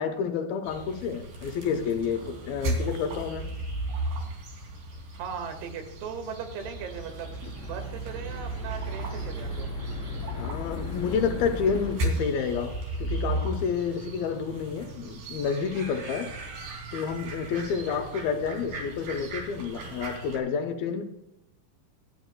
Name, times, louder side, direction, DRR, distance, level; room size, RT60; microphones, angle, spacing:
voice 1, 0.0-3.5 10.3-16.3 16.9-21.0, left 6 dB, 75° left, 2.4 m, -29 dB
sound 1, 0.6-20.4, right 1 dB, 55° right, 4.3 m, -36 dB
voice 2, 5.2-7.4 7.6-9.7, right 6 dB, 75° right, 3.8 m, -38 dB
sound 2, 6.5-11.9, equal, 10° left, 2.4 m, -36 dB
25.5 x 10.5 x 2.2 m
omnidirectional pair, 4.9 m